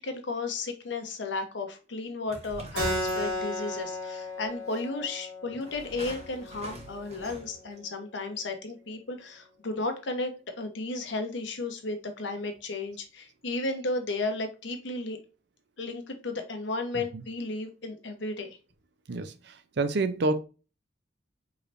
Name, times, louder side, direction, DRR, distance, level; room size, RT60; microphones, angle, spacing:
voice 1, 0.0-15.2 15.8-18.6, left 2 dB, 75° left, 1.0 m, -34 dB
sound 1, 2.3-3.8 4.7-4.8 5.6-7.7, right 1 dB, 35° right, 1.2 m, -43 dB
Keyboard (musical), 2.7-7.8, left 1 dB, 85° right, 2.4 m, -35 dB
voice 2, 19.8-20.4, right 3 dB, 65° right, 0.6 m, -27 dB
4.8 x 3.3 x 2.5 m
head